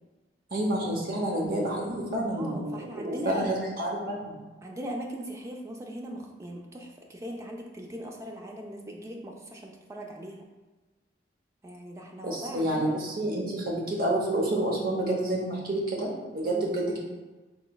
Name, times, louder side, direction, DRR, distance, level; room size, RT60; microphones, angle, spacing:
voice 1, 0.5-4.3 12.2-17.0, right 1 dB, 55° right, -2 dB, 0.7 m, -29 dB
voice 2, 2.3-3.5 4.6-10.5 11.6-13.0 16.4-16.7, right 1 dB, 15° right, 1 dB, 0.3 m, -39 dB
3.8 x 3.0 x 2.2 m, 1.2 s
head